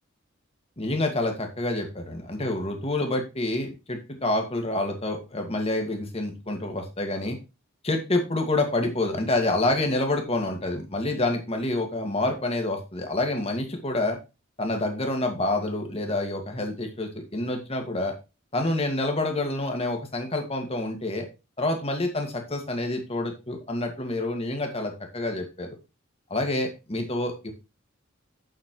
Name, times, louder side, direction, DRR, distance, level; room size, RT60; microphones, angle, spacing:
voice 1, 0.8-7.4 7.8-14.2 14.6-18.1 18.5-21.3 21.6-25.7 26.3-27.5, left 2 dB, 30° left, 3 dB, 2.0 m, -27 dB
8.3 x 7.6 x 3.1 m, 0.27 s
head